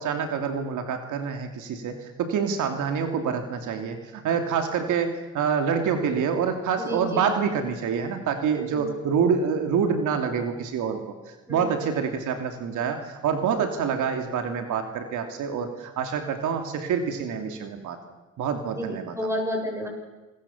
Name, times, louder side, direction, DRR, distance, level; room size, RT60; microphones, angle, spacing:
voice 1, 0.0-11.1 11.5-18.0 18.4-19.1, right 6 dB, 80° right, 5 dB, 2.9 m, -26 dB
voice 2, 6.8-7.3 8.7-8.9 11.5-11.6 18.7-19.9, equal, 10° right, 2 dB, 7.7 m, -30 dB
27.5 x 21.0 x 7.3 m, 1.1 s
cardioid pair, 90°, 30 cm